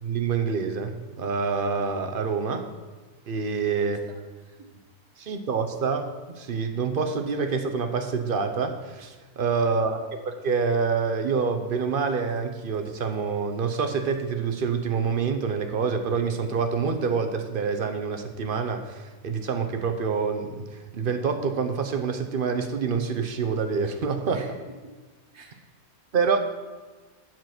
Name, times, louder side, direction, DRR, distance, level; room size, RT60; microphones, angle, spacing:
voice 1, 0.0-2.6 3.3-4.0 5.2-10.0 10.3-24.4 26.1-26.4, right 5 dB, 50° right, 6 dB, 0.7 m, -27 dB
voice 2, 3.8-4.7 5.2-5.3 9.7-9.8 24.3-24.5 24.8-24.9 25.3-25.7, right 3 dB, 70° right, 0 dB, 2.0 m, -49 dB
7.6 x 7.3 x 5.9 m, 1.3 s
omnidirectional pair, 1.7 m